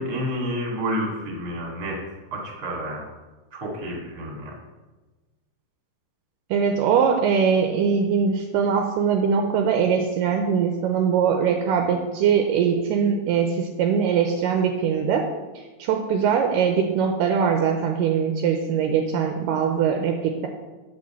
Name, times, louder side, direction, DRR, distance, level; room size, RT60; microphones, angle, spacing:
voice 1, 0.0-2.0 2.3-3.1 3.5-4.5, equal, 30° right, -2 dB, 2.2 m, -29 dB
voice 2, 6.5-15.2 15.6-20.5, right 7 dB, 80° right, 3 dB, 2.1 m, -22 dB
8.3 x 5.4 x 6.8 m, 1.2 s
omnidirectional pair, 4.2 m